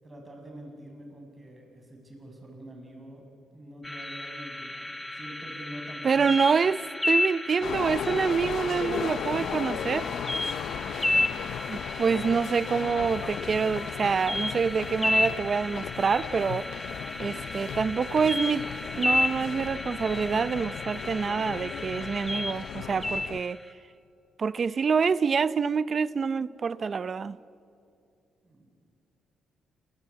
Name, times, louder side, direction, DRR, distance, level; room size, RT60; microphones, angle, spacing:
voice 1, 0.0-3.2 3.5-6.4 8.7-10.3 10.7-12.2 17.0-18.0 18.5-19.9 28.4-28.7, right 1 dB, 25° right, 7.4 m, -46 dB
sound 1, 3.8-23.7, left 1 dB, 10° left, 1.6 m, -32 dB
voice 2, 6.0-6.8 7.0-10.0 11.7-16.7 17.2-18.6 19.0-23.6 24.4-27.4, right 5 dB, 40° right, 0.6 m, -26 dB
sound 2, 7.6-23.4, left 10 dB, 75° left, 0.6 m, -36 dB
28.5 x 22.5 x 8.6 m
cardioid pair, 90°, 0 cm